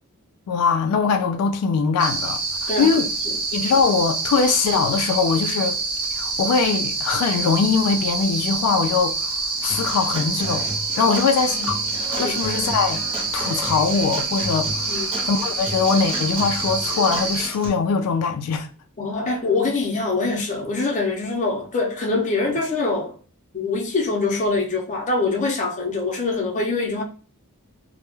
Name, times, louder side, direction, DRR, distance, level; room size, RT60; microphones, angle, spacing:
voice 1, 0.5-3.1 3.5-5.8 6.1-10.7 11.0-11.8 12.1-13.0 13.3-18.7, left 5 dB, 85° left, 0.3 m, -22 dB
sound 1, 2.0-17.5, right 3 dB, 70° right, 0.6 m, -26 dB
voice 2, 2.7-3.4 11.1-11.2 11.5-11.7 12.2-12.4 14.9-15.2 19.0-23.2 23.5-27.0, left 3 dB, 35° left, 0.5 m, -24 dB
Human voice / Acoustic guitar / Drum, 9.7-17.7, right 1 dB, 25° right, 0.7 m, -33 dB
2.2 x 2.0 x 2.9 m
head